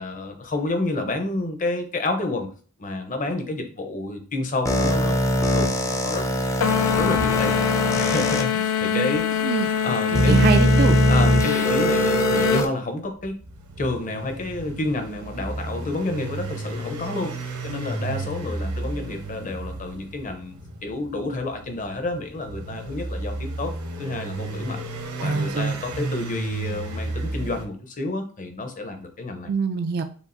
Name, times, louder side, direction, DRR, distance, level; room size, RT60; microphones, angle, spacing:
voice 1, 0.0-2.5 2.8-5.2 5.5-6.2 6.7-7.5 7.9-9.2 9.8-10.4 11.1-13.4 13.8-17.4 17.6-20.5 20.8-23.7 24.0-24.8 25.2-29.5, left 2 dB, 35° left, 5 dB, 0.7 m, -29 dB
sound 1, 4.7-8.4 9.2-9.3 10.1-12.7, equal, 15° left, 0.5 m, -21 dB
sound 2, 6.6-12.7, left 8 dB, 75° left, 0.4 m, -23 dB
voice 2, 10.1-11.0 25.2-25.7 29.5-30.0, right 5 dB, 45° right, 7 dB, 0.3 m, -24 dB
sound 3, 13.2-27.7, right 2 dB, 75° right, 0.9 m, -33 dB
6.9 x 2.4 x 2.6 m, 0.41 s
head